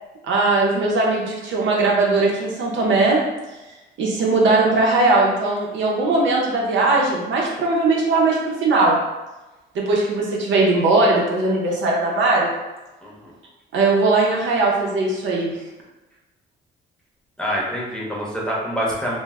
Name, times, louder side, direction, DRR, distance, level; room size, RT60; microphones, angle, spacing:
voice 1, 0.2-3.2 4.0-9.0 9.7-12.5 13.7-15.5, right 3 dB, 70° right, -3 dB, 0.7 m, -19 dB
voice 2, 17.4-19.2, equal, 5° left, -5 dB, 0.8 m, -26 dB
2.1 x 2.0 x 3.5 m, 1.1 s
cardioid pair, 90°, 20 cm